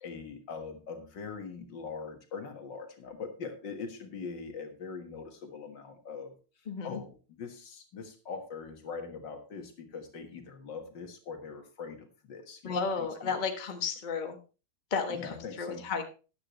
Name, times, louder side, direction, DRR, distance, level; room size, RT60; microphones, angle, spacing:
voice 1, 0.0-6.4 6.8-13.4 15.1-15.9, left 5 dB, 60° left, 5 dB, 2.2 m, -42 dB
voice 2, 6.7-7.0 12.6-14.4 14.9-16.0, left 5 dB, 25° left, 5 dB, 1.1 m, -33 dB
13.0 x 9.8 x 3.1 m, 0.33 s
omnidirectional pair, 2.3 m